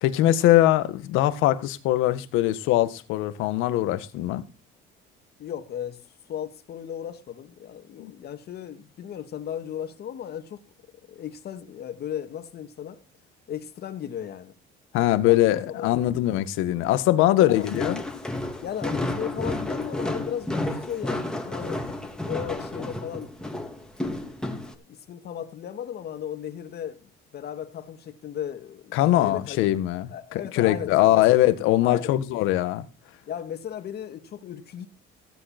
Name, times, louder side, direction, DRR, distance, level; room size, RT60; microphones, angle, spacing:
voice 1, 0.0-4.4 8.0-8.1 14.9-18.0 28.9-32.9, left 14 dB, 80° left, 1.7 m, -22 dB
voice 2, 5.4-6.0 6.3-10.6 11.1-13.0 13.5-14.5 15.3-16.0 17.4-17.7 18.6-21.9 22.3-23.3 24.9-29.6 30.1-31.2 31.8-32.2 33.3-34.9, left 9 dB, 55° left, 2.4 m, -36 dB
Walk footsteps, 17.5-24.7, left 2 dB, 5° left, 3.4 m, -31 dB
16.5 x 10.5 x 4.4 m
cardioid pair, 105°, 20 cm